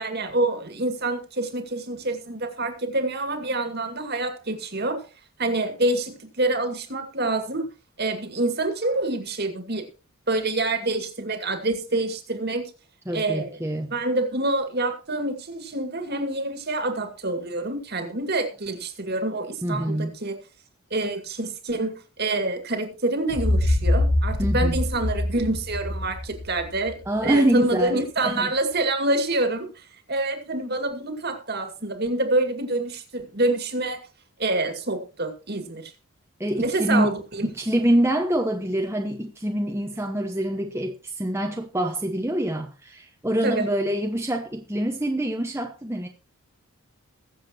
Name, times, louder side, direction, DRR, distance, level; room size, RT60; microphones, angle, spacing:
voice 1, 0.0-5.0 5.4-7.7 8.0-9.8 10.3-12.6 13.1-13.6 13.9-20.4 20.9-34.0 34.4-35.9 36.6-37.5 43.4-43.7, right 2 dB, 45° right, 7 dB, 2.2 m, -27 dB
voice 2, 13.1-13.9 19.6-20.2 24.4-24.8 27.1-28.5 36.4-37.1 37.4-46.1, right 1 dB, 10° right, 2 dB, 1.0 m, -25 dB
sound 1, 23.3-27.2, left 1 dB, 75° left, 1.2 m, -24 dB
21.5 x 7.4 x 3.0 m, 0.33 s
head